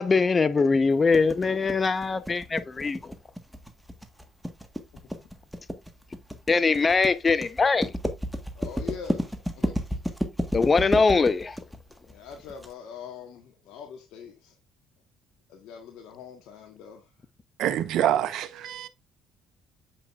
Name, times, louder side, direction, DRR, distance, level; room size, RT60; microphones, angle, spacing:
voice 1, 0.0-3.1 6.5-7.9 10.5-11.6, left 4 dB, 30° left, 0.9 m, -22 dB
sound 1, 1.1-12.7, equal, ahead, 1.5 m, -31 dB
voice 2, 4.9-5.3 8.5-9.9 12.1-14.6 15.5-17.1, left 7 dB, 75° left, 1.4 m, -43 dB
voice 3, 17.6-18.9, right 11 dB, 70° right, 0.9 m, -26 dB
7.5 x 5.9 x 2.5 m
supercardioid pair, 75°, 0 cm